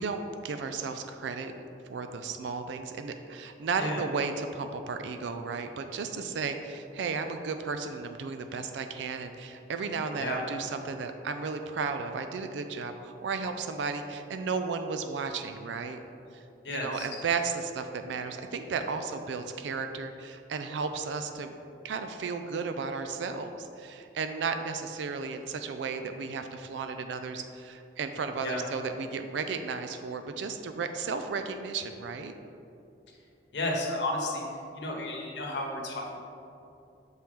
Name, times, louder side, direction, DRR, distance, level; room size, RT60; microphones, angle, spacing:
voice 1, 0.0-1.5 1.9-16.0 16.3-21.5 21.8-32.3, right 5 dB, 85° right, 7 dB, 0.4 m, -34 dB
voice 2, 16.6-17.1 28.4-28.6 33.5-34.4 34.7-36.2, left 1 dB, 75° left, -1 dB, 1.0 m, -32 dB
6.3 x 4.4 x 3.5 m, 2.7 s
head